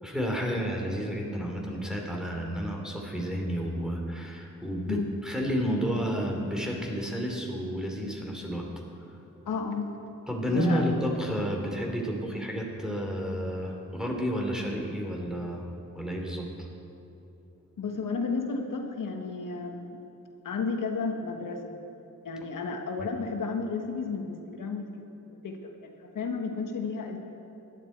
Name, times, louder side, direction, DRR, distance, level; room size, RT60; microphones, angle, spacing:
voice 1, 0.0-8.7 10.3-15.6 15.9-16.5, equal, ahead, 0 dB, 3.0 m, -31 dB
voice 2, 9.4-9.9 10.5-10.8 17.8-20.0 20.4-21.7 22.2-24.9 25.2-27.2, left 4 dB, 80° left, 3 dB, 1.3 m, -32 dB
17.0 x 11.5 x 4.5 m, 2.9 s
cardioid pair, 70°, 32 cm